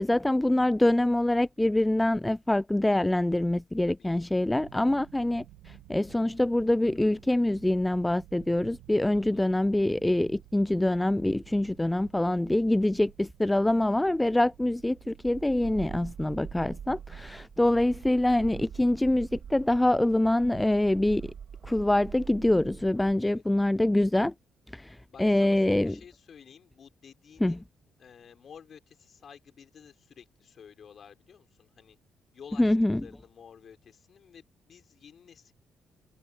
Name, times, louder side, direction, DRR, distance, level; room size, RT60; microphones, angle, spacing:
voice 1, 0.0-21.3 21.6-24.3 24.7-26.0 27.4-27.6 32.6-33.0, left 1 dB, 10° left, 0.4 m, -25 dB
sound 1, 4.6-19.0, right 18 dB, 80° right, 3.4 m, -55 dB
voice 2, 9.1-9.4 12.2-12.6 17.6-17.8 23.2-23.4 25.1-27.6 28.0-32.0 32.3-32.8 33.0-35.5, left 7 dB, 55° left, 5.3 m, -52 dB
sound 2, 15.2-23.1, right 7 dB, 55° right, 3.7 m, -44 dB
hypercardioid pair, 45°, 0 cm